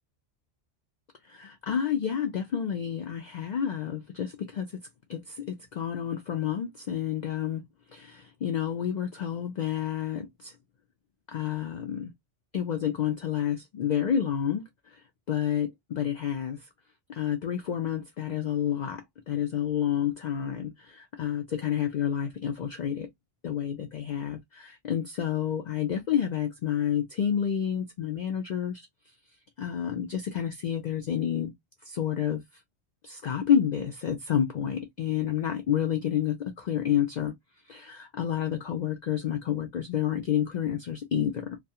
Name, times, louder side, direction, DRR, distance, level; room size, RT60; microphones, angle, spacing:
voice 1, 1.3-4.7 5.1-7.6 7.9-10.5 11.3-12.1 12.5-14.6 14.9-15.0 15.3-16.6 17.1-23.1 23.4-28.9 29.6-31.5 31.8-32.4 33.0-37.4 37.7-41.6, left 9 dB, 60° left, 0.4 m, -29 dB
2.3 x 2.3 x 2.7 m
omnidirectional pair, 1.2 m